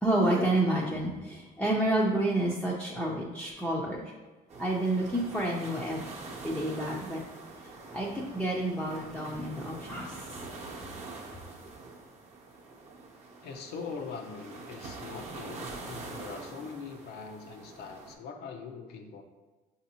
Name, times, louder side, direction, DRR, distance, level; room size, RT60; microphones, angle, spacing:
voice 1, 0.0-4.1 4.6-6.0 6.4-7.2 7.9-10.3, right 1 dB, 5° left, -4 dB, 0.5 m, -29 dB
sound 1, 4.5-18.1, right 3 dB, 40° right, 0.8 m, -44 dB
voice 2, 13.4-19.2, left 5 dB, 80° left, 4 dB, 0.6 m, -42 dB
5.7 x 2.7 x 2.8 m, 1.2 s
cardioid pair, 110°, 17 cm